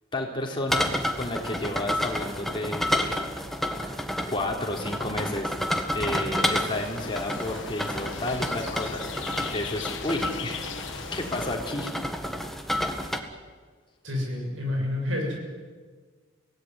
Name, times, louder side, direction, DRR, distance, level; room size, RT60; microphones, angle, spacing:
voice 1, 0.1-3.2 4.3-5.6 5.9-10.6 11.1-11.9, left 1 dB, 25° left, 0 dB, 3.7 m, -31 dB
sound 1, 0.7-13.2, left 1 dB, ahead, 1.5 m, -30 dB
sound 2, 6.3-11.6, left 5 dB, 70° left, 1.8 m, -38 dB
voice 2, 14.0-15.4, left 1 dB, 80° right, 1 dB, 7.2 m, -29 dB
24.0 x 17.0 x 9.7 m, 1.5 s
head